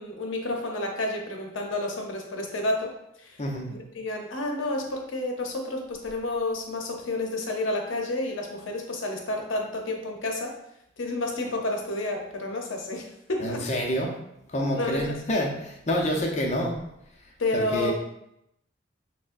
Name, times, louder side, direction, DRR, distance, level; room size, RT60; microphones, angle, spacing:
voice 1, 0.0-2.9 3.2-3.4 3.7-10.5 11.0-13.6 14.8-15.0 17.4-17.9, left 2 dB, 80° left, 2 dB, 0.7 m, -30 dB
voice 2, 13.4-14.1 14.5-16.8 17.5-17.9, equal, 35° left, 0 dB, 0.6 m, -27 dB
6.2 x 2.1 x 2.5 m, 0.81 s
head